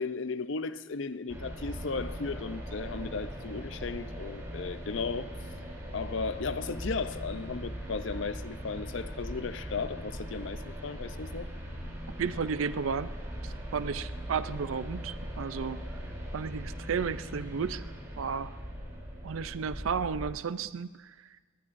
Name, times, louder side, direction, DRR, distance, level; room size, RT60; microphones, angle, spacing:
voice 1, 0.0-5.3 5.9-11.5, left 4 dB, 70° left, 0.6 m, -35 dB
sound 1, 1.3-20.3, equal, 15° right, 3.2 m, -40 dB
voice 2, 12.2-13.1 13.4-16.0 16.3-17.9 18.2-18.6 19.2-21.3, right 6 dB, 85° right, 0.5 m, -33 dB
23.0 x 18.5 x 2.6 m
head